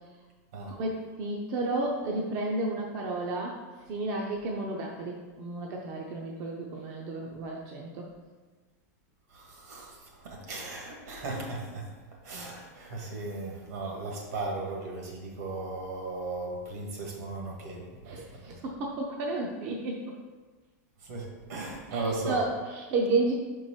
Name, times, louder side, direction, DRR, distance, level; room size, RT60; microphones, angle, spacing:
voice 1, 0.7-3.6 3.9-8.1 18.1-20.2 21.9-23.3, right 2 dB, 35° right, -1 dB, 0.6 m, -32 dB
voice 2, 9.3-9.9 10.2-11.8 12.2-18.5 21.1-22.4, right 3 dB, 70° right, 0 dB, 1.7 m, -36 dB
5.6 x 4.6 x 4.4 m, 1.3 s
supercardioid pair, 165°, 9 cm